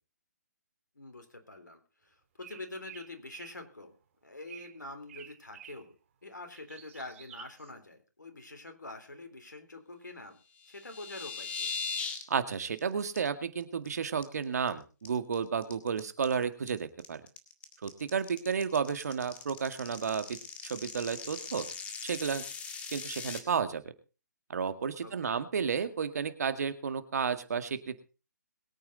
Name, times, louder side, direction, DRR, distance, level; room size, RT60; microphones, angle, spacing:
voice 1, 0.9-3.9 4.2-5.9 6.2-10.4 10.7-11.7 25.0-25.4, left 2 dB, 85° left, 6 dB, 3.4 m, -46 dB
sound 1, 2.4-3.6 4.5-4.8 5.1-5.9 6.3-7.7, right 10 dB, 45° right, 2.4 m, -51 dB
sound 2, 10.6-12.2 12.5-12.8 13.1-13.2 13.6-13.9 14.2-14.7 15.0-23.4, left 5 dB, 15° left, 1.9 m, -40 dB
voice 2, 12.3-17.2 17.8-21.7 22.0-22.4 22.9-23.8 24.5-28.0, right 6 dB, 60° right, 10 dB, 2.0 m, -32 dB
22.0 x 8.9 x 4.0 m, 0.33 s
figure-of-eight pair, 140°, 10 cm